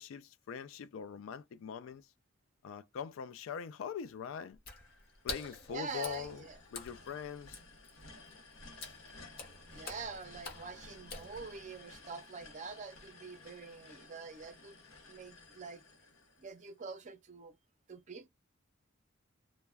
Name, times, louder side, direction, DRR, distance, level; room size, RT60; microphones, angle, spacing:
voice 1, 0.0-2.1 2.6-4.6 5.2-6.4 6.7-7.6, left 7 dB, 75° left, 0.3 m, -42 dB
Water / Splash splatter, 4.5-11.8, left 4 dB, 50° left, 0.8 m, -47 dB
sound 1, 4.8-16.9, left 3 dB, 90° left, 0.7 m, -56 dB
voice 2, 5.7-6.6 9.7-14.8 15.1-15.8 16.4-17.6 17.9-18.3, right 4 dB, 35° right, 0.5 m, -45 dB
2.2 x 2.1 x 3.3 m
head